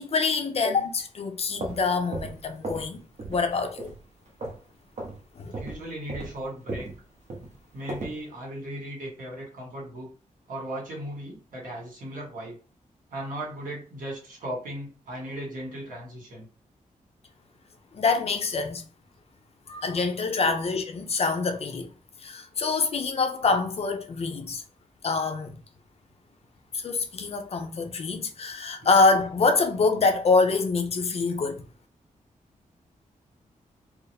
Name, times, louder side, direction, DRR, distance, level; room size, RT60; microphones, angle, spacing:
voice 1, 0.0-3.9 5.4-5.5 17.9-18.9 19.7-21.9 22.2-24.6 25.0-25.6 26.7-31.6, left 4 dB, 45° left, 0.6 m, -25 dB
sound 1, 1.4-2.9 3.2-3.5 3.8-4.7 5.0-5.2 5.5-8.2, right 2 dB, 55° right, 0.9 m, -36 dB
voice 2, 5.6-6.9 7.7-10.1 10.5-12.6 13.1-16.5 28.8-28.9, right 1 dB, 75° right, 1.9 m, -37 dB
4.5 x 2.0 x 3.4 m
wide cardioid pair, 160°, 14 cm